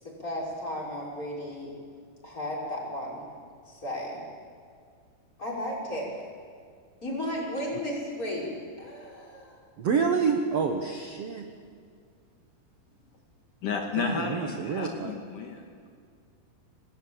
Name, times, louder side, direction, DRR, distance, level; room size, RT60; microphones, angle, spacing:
voice 1, 0.0-1.7 2.2-3.2 3.7-4.2 5.4-6.1 7.0-8.5 8.8-9.6, left 1 dB, 20° left, -3 dB, 6.2 m, -34 dB
voice 2, 9.8-11.5 14.0-15.1, right 5 dB, 55° right, 4 dB, 1.8 m, -28 dB
voice 3, 13.6-15.7, left 5 dB, 60° left, 2 dB, 3.2 m, -32 dB
27.5 x 20.0 x 8.9 m, 2.1 s
omnidirectional pair, 4.4 m